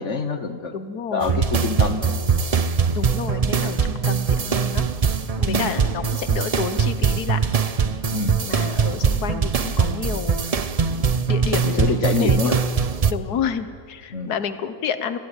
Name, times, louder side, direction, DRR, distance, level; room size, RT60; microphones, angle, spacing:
voice 1, 0.0-0.7 1.1-2.2 5.4-5.7 8.1-8.4 11.6-12.5 14.1-14.3, left 4 dB, 50° left, 9 dB, 1.4 m, -25 dB
voice 2, 0.7-1.4 2.9-4.8 5.4-7.4 8.4-10.6 10.9-11.0 11.3-12.6 13.1-15.2, left 7 dB, 75° left, 11 dB, 1.6 m, -30 dB
sound 1, 1.2-13.1, right 6 dB, 45° right, 0.4 m, -22 dB
26.0 x 19.5 x 9.1 m, 2.4 s
omnidirectional pair, 1.7 m